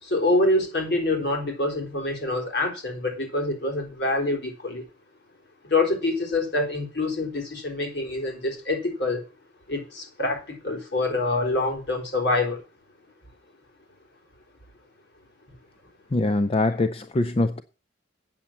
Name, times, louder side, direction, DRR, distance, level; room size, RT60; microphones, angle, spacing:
voice 1, 0.0-4.8 5.6-9.2 9.7-12.6, left 2 dB, 60° left, 3.8 m, -26 dB
voice 2, 16.1-17.6, left 2 dB, 30° left, 0.5 m, -23 dB
8.5 x 7.2 x 7.1 m
head